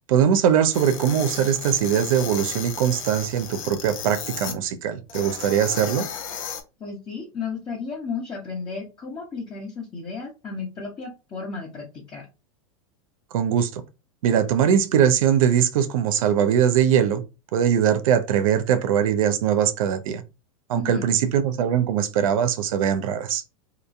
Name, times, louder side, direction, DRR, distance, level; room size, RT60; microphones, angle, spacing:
voice 1, 0.1-6.1 13.3-13.8 14.2-17.2 17.5-20.2 20.7-23.4, right 9 dB, 70° right, 0.5 m, -21 dB
sound 1, 0.7-4.6 5.1-6.6, left 8 dB, 70° left, 0.6 m, -34 dB
voice 2, 6.8-12.2 20.7-21.0, left 5 dB, 25° left, 0.8 m, -33 dB
2.9 x 2.2 x 2.5 m
hypercardioid pair, 110°, 18 cm